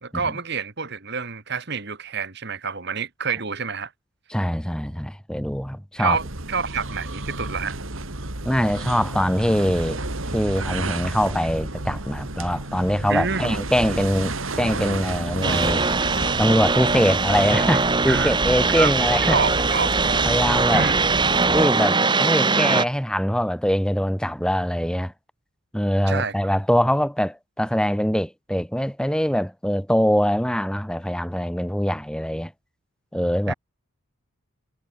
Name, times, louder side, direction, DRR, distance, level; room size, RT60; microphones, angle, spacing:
voice 1, 0.0-3.9 6.0-7.8 13.1-13.6 18.1-18.3 18.8-18.9 19.3-20.0 20.7-20.9 26.1-26.3 33.5-33.6, right 5 dB, 50° right, 1.9 m, -27 dB
voice 2, 4.3-6.2 8.4-10.0 10.3-16.0 16.3-19.4 20.3-20.9 21.5-25.1 25.7-32.5 33.1-33.5, equal, 5° left, 1.8 m, -23 dB
sound 1, 6.0-21.9, right 2 dB, 65° right, 2.9 m, -31 dB
sound 2, 15.4-22.8, right 4 dB, 20° right, 1.2 m, -21 dB
head